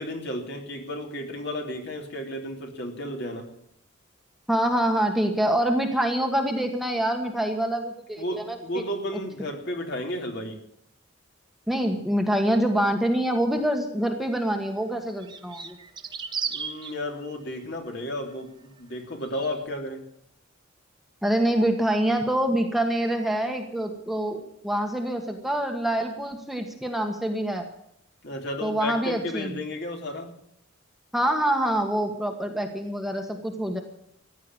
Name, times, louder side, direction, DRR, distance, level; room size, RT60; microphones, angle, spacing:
voice 1, 0.0-3.5 8.2-10.6 16.5-20.0 28.2-30.3, left 1 dB, 55° left, 3 dB, 2.9 m, -33 dB
voice 2, 4.5-8.8 9.1-9.2 11.7-15.8 21.2-27.7 28.6-29.6 31.1-33.8, right 1 dB, ahead, 3 dB, 1.4 m, -25 dB
sound 1, 14.2-14.3 15.2-16.9 19.2-19.6, right 6 dB, 20° right, 1.0 m, -34 dB
15.0 x 10.5 x 8.8 m, 0.73 s
head